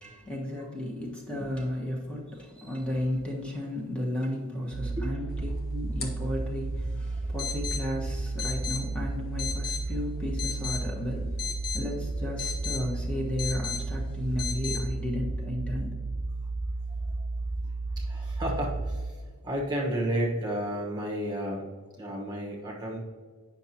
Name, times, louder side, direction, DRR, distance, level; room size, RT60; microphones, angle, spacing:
voice 1, 0.0-11.5 11.7-16.0, left 1 dB, 5° left, -3 dB, 1.3 m, -34 dB
sound 1, 4.7-19.1, right 3 dB, 70° right, 0.7 m, -33 dB
sound 2, 5.3-14.8, left 6 dB, 45° left, 1.2 m, -38 dB
voice 2, 18.0-19.2 19.4-21.7 22.0-23.0, right 1 dB, 20° right, -2 dB, 1.2 m, -32 dB
9.2 x 5.9 x 2.9 m, 1.5 s
head